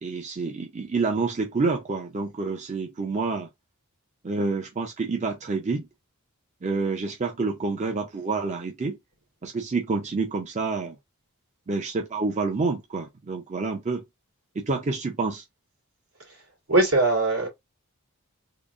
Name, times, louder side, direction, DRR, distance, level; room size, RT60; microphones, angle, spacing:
voice 1, 0.0-3.5 4.2-5.9 6.6-9.0 9.4-11.0 11.7-14.0 14.6-15.4, right 3 dB, 30° right, 0.5 m, -28 dB
voice 2, 16.7-17.5, right 2 dB, 75° right, 2.0 m, -21 dB
3.8 x 2.0 x 3.5 m
head